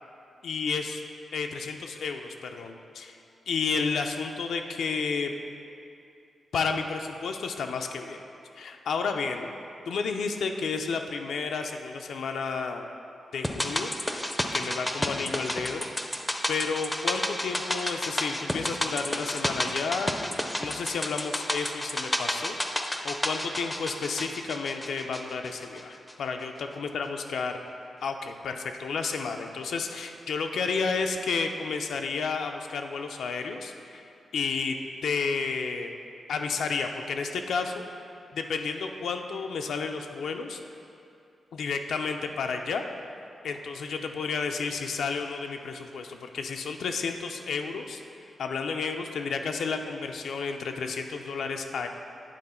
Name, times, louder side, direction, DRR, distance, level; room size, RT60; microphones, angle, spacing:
voice 1, 0.4-1.0 1.3-3.2 3.5-5.3 6.5-8.2 8.5-9.5 9.9-12.9 13.3-13.9 14.5-15.9 16.5-20.1 20.6-22.6 23.0-27.6 28.0-34.0 34.3-34.7 35.0-35.9 36.3-37.8 38.3-40.6 41.5-42.8 43.4-48.0 48.4-51.9, left 5 dB, 85° left, 4 dB, 0.4 m, -31 dB
sound 1, 13.4-25.8 26.1-26.2, left 1 dB, 10° left, 0.4 m, -31 dB
9.0 x 3.7 x 4.2 m, 2.6 s
wide cardioid pair, 120°, 0 cm